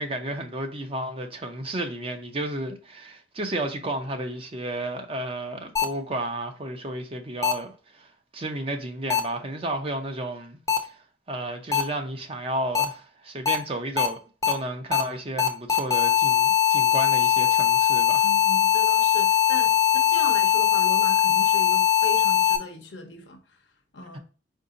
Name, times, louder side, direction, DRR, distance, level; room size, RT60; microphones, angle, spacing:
voice 1, 0.0-11.0 11.3-14.2 14.5-18.3 24.1-24.2, right 1 dB, 30° right, 0.6 m, -32 dB
sound 1, 5.8-5.9 7.4-7.5 9.1-9.2 10.7-10.8 11.7-11.8 12.8-12.9 13.5-13.6 14.0-14.1 14.4-14.5 14.9-15.0 15.4-22.6, left 10 dB, 20° left, 0.6 m, -20 dB
voice 2, 18.2-23.6 23.9-24.2, left 1 dB, 80° left, 0.9 m, -38 dB
4.6 x 2.7 x 3.8 m
head